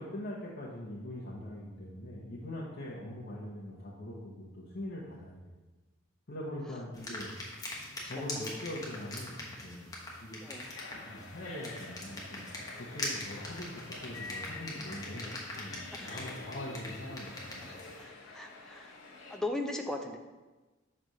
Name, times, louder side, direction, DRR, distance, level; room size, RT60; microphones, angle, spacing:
voice 1, 0.0-5.5 6.3-7.3 8.1-9.9 10.2-10.4 10.9-15.3 15.6-17.3 17.5-17.7, left 1 dB, 55° left, -5 dB, 0.9 m, -42 dB
sound 1, 6.9-18.0, left 1 dB, 20° left, 1.0 m, -43 dB
sound 2, 10.5-19.4, left 3 dB, 90° left, 1.0 m, -48 dB
voice 2, 15.9-16.2 18.0-18.9 19.3-20.2, left 2 dB, 5° left, 2 dB, 0.4 m, -38 dB
6.2 x 3.3 x 5.4 m, 1.2 s
head